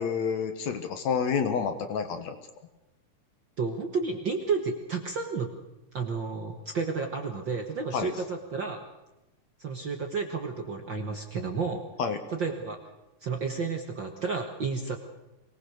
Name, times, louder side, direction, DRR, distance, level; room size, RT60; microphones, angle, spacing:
voice 1, 0.0-2.4 7.9-8.1 12.0-12.2, left 6 dB, 60° left, 8 dB, 2.5 m, -29 dB
voice 2, 3.6-5.5 5.9-8.8 9.6-11.8 12.3-12.8 13.2-15.0, right 4 dB, 50° right, 4 dB, 1.6 m, -31 dB
23.5 x 19.0 x 6.5 m, 0.97 s
omnidirectional pair, 3.8 m